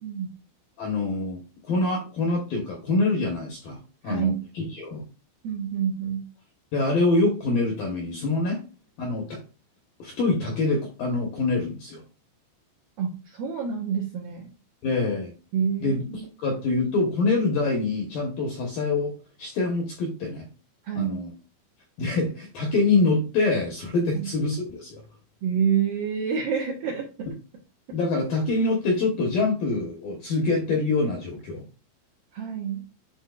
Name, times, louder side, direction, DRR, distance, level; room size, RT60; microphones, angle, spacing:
voice 1, 0.8-3.8 4.0-5.0 6.7-8.6 9.0-9.4 10.0-12.0 14.8-15.3 15.8-16.0 16.4-19.1 19.4-20.5 20.9-21.3 22.0-25.0 27.9-31.6, left 3 dB, 70° left, 0 dB, 2.1 m, -25 dB
voice 2, 4.0-4.4 5.4-6.2 13.0-14.5 15.5-16.3 20.8-21.2 24.1-24.3 25.4-27.3 32.3-32.8, right 7 dB, 80° right, -3 dB, 2.1 m, -27 dB
11.0 x 4.3 x 2.4 m, 0.33 s
omnidirectional pair, 5.9 m